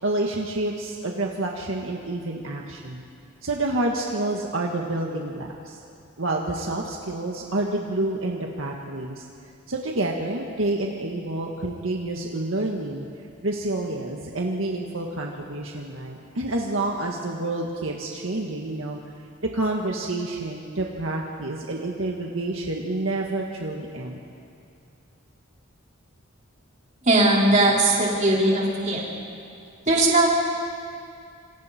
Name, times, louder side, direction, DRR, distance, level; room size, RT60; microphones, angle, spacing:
voice 1, 0.0-3.0 3.4-5.8 6.2-9.2 9.7-13.1 13.4-19.0 19.5-24.2, right 2 dB, 75° right, 0 dB, 1.8 m, -28 dB
voice 2, 27.0-29.0 29.9-30.3, right 2 dB, 35° right, -4 dB, 4.9 m, -19 dB
27.5 x 27.0 x 4.5 m, 2.5 s
head